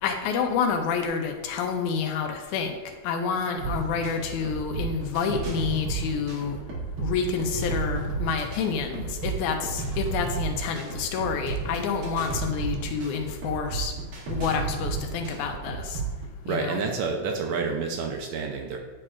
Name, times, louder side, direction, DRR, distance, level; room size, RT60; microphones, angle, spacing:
voice 1, 0.0-6.6 7.0-13.9 14.3-16.0 16.5-16.8, left 6 dB, 90° left, 5 dB, 2.2 m, -28 dB
sound 1, 3.6-16.2, right 4 dB, 55° right, 1.2 m, -32 dB
voice 2, 16.5-18.8, right 5 dB, 75° right, 3 dB, 1.8 m, -29 dB
9.9 x 4.9 x 2.4 m, 1.2 s
omnidirectional pair, 3.4 m